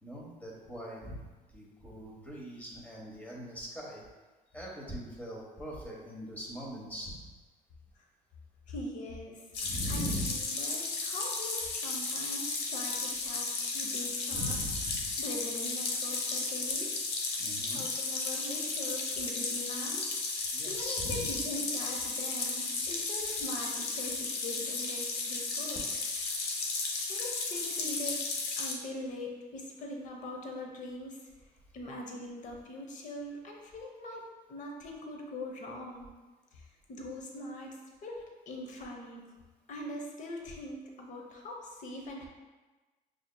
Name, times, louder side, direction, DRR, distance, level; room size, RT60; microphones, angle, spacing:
voice 1, 0.0-4.0 4.5-7.2 9.6-10.3 14.3-15.1 17.4-17.8 20.5-21.3, equal, 10° left, -3 dB, 1.1 m, -40 dB
voice 2, 8.7-14.6 15.2-17.0 17.6-20.1 20.4-25.8 27.1-28.3 28.6-31.2 31.7-36.1 36.5-39.2 39.7-42.3, left 1 dB, 45° left, 0 dB, 0.7 m, -42 dB
sound 1, 9.5-28.7, left 3 dB, 85° left, 0.7 m, -34 dB
6.4 x 2.7 x 2.2 m, 1.2 s
cardioid pair, 110°, 17 cm